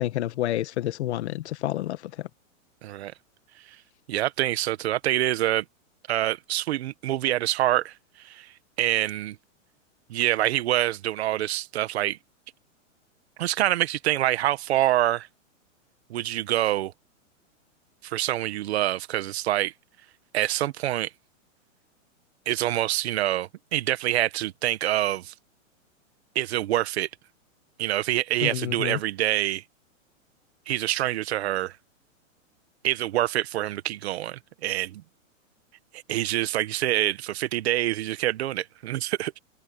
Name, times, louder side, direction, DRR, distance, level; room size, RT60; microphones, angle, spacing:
voice 1, 0.0-2.0 28.4-29.0, left 13 dB, 55° left, 1.6 m, -28 dB
voice 2, 2.8-3.1 3.7-3.8 4.1-5.6 6.1-8.5 8.8-9.4 10.1-12.2 13.4-15.3 16.1-16.9 18.0-19.7 20.3-21.1 22.5-25.3 26.3-27.1 27.8-29.6 30.7-31.8 32.8-35.0 35.9-39.3, right 14 dB, 55° right, 1.4 m, -26 dB
hypercardioid pair, 160°, 40 cm